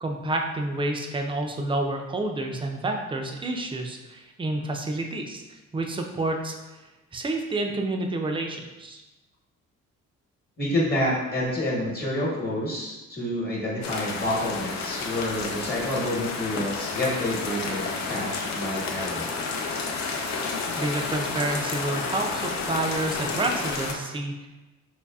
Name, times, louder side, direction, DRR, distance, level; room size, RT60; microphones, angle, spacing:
voice 1, 0.0-5.4 5.7-6.6 7.1-9.0 20.8-24.5, right 2 dB, 15° right, 2 dB, 0.5 m, -29 dB
voice 2, 10.6-19.3, left 1 dB, 30° left, -4 dB, 1.2 m, -28 dB
sound 1, 13.8-23.9, left 4 dB, 65° left, 0.6 m, -31 dB
4.0 x 3.2 x 2.3 m, 1.1 s
cardioid pair, 90°, 30 cm